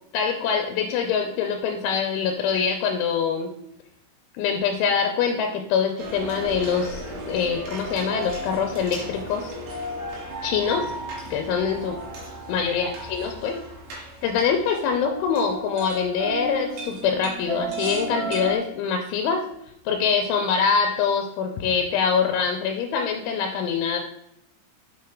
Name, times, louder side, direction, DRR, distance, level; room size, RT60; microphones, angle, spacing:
voice 1, 0.1-3.5 4.3-9.5 10.4-10.9 11.3-12.0 12.5-13.6 14.0-19.4 19.9-24.0, left 6 dB, 85° left, 4 dB, 2.9 m, -24 dB
sound 1, 6.0-18.6, right 1 dB, 70° right, 3.8 m, -34 dB
7.7 x 6.0 x 3.6 m, 0.76 s
omnidirectional pair, 5.9 m